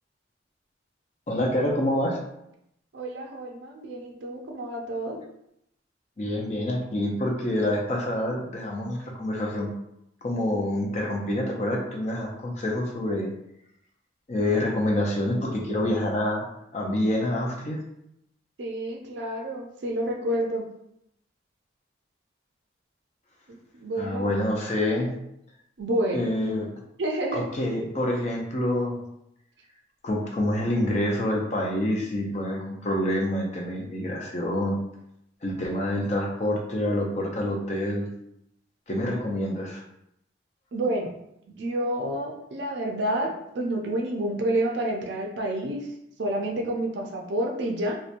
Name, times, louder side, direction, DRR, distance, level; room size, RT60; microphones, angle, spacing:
voice 1, 1.3-2.2 6.2-9.7 10.2-13.3 14.3-16.5 16.7-17.8 24.0-25.2 26.1-26.7 27.3-29.0 30.0-34.8 35.4-38.1 38.9-39.8, left 1 dB, 35° left, 0 dB, 0.5 m, -27 dB
voice 2, 2.9-5.2 18.6-20.7 23.5-24.3 25.8-26.2 27.0-27.5 40.7-41.1 41.5-45.9 46.2-48.0, right 1 dB, 65° right, 1 dB, 0.5 m, -29 dB
2.8 x 2.1 x 2.5 m, 0.77 s
head